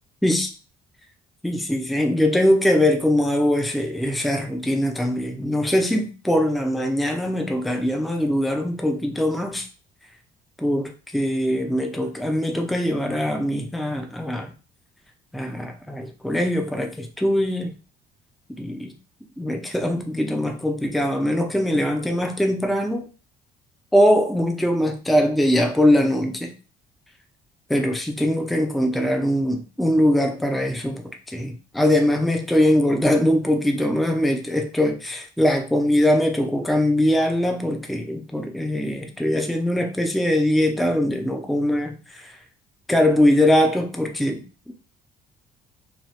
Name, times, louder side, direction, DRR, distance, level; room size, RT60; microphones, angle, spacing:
voice 1, 1.4-9.7 10.6-14.5 15.3-17.7 18.6-18.9 19.4-23.1 23.9-26.5 27.7-42.4 42.9-44.7, left 1 dB, ahead, 0.4 m, -22 dB
2.9 x 2.3 x 3.0 m
cardioid pair, 110°, 17 cm